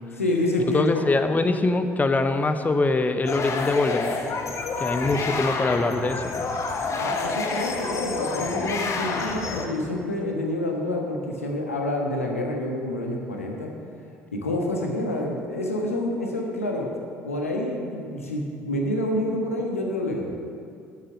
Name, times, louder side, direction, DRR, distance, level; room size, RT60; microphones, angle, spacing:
voice 1, 0.2-1.0 7.0-13.7 14.3-16.9 17.2-20.3, left 1 dB, 85° left, 0 dB, 1.3 m, -27 dB
voice 2, 0.7-4.2 4.8-6.4, left 3 dB, 20° left, 9 dB, 0.9 m, -23 dB
sound 1, 3.3-9.7, left 4 dB, 45° left, 1.3 m, -29 dB
10.0 x 8.0 x 6.6 m, 2.4 s
figure-of-eight pair, 55°, 7 cm